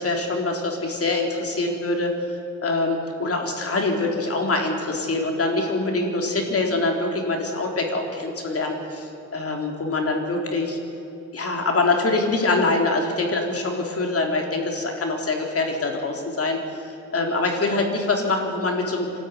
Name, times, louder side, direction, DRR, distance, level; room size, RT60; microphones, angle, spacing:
voice 1, 0.0-10.8 11.3-19.1, left 2 dB, 50° left, 2 dB, 3.9 m, -24 dB
26.5 x 13.0 x 9.6 m, 2.7 s
cardioid pair, 100°, 30 cm